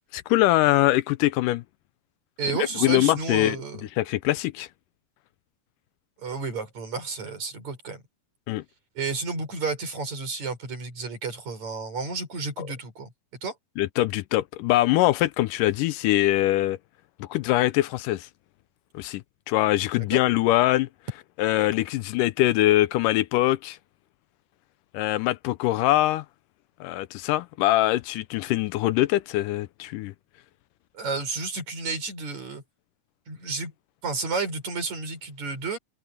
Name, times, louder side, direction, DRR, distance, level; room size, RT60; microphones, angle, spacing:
voice 1, 0.1-1.6 2.8-3.6 4.0-4.7 8.5-8.6 12.6-12.7 13.8-16.8 17.2-18.3 18.9-19.2 19.5-20.9 21.4-23.8 24.9-26.2 26.8-30.1, left 16 dB, 85° left, 2.1 m, -23 dB
voice 2, 2.4-3.9 6.2-8.0 9.0-13.1 13.4-13.5 20.1-20.2 30.9-32.6 33.3-33.7 34.0-35.8, right 4 dB, 55° right, 7.0 m, -31 dB
omnidirectional pair, 3.9 m